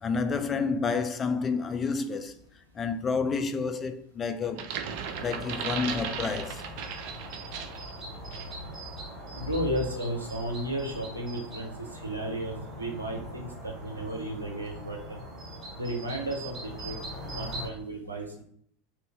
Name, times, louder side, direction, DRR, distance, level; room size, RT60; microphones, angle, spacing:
voice 1, 0.0-2.4 2.7-4.8 5.2-6.6, left 5 dB, 25° left, 0.4 m, -29 dB
sound 1, 4.4-7.9 8.3-8.5, right 7 dB, 55° right, 0.4 m, -36 dB
sound 2, 4.8-17.7, right 1 dB, 30° right, 1.1 m, -41 dB
voice 2, 9.3-15.2 15.8-17.0 17.3-18.4, right 1 dB, 85° right, 0.8 m, -34 dB
3.1 x 2.7 x 3.4 m
figure-of-eight pair, 80°, 0 cm